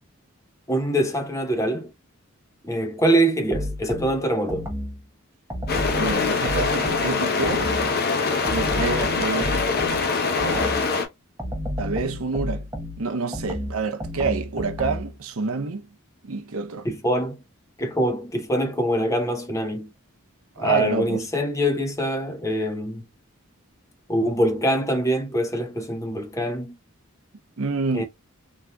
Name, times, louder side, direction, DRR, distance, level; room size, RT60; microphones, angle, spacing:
voice 1, 0.7-1.9 2.6-4.7 16.8-17.4 17.8-19.9 20.6-23.0 24.1-26.8 27.9-28.0, right 1 dB, 15° left, 0.7 m, -24 dB
sound 1, 3.5-5.0 5.5-8.0 8.4-10.9 11.4-15.2, left 1 dB, 15° right, 0.8 m, -31 dB
sound 2, 5.7-11.1, left 4 dB, 50° left, 0.8 m, -24 dB
voice 2, 5.9-7.7 8.5-9.7 10.3-10.8 11.8-15.9 16.2-16.9 20.6-21.2 27.6-28.0, right 4 dB, 80° right, 0.7 m, -28 dB
3.7 x 2.8 x 2.2 m
head